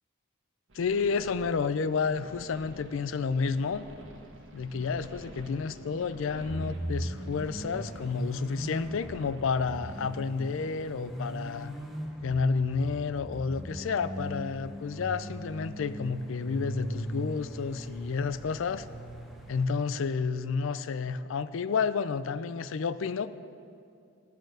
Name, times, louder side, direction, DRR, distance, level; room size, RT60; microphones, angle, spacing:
voice 1, 0.7-3.8 4.5-11.7 12.2-18.9 19.5-23.3, left 5 dB, 75° left, 14 dB, 0.4 m, -30 dB
sound 1, 0.7-10.0, right 1 dB, 70° right, 1.4 m, -48 dB
sound 2, 6.5-19.7, right 1 dB, ahead, 0.9 m, -39 dB
11.5 x 6.6 x 6.4 m, 2.4 s
head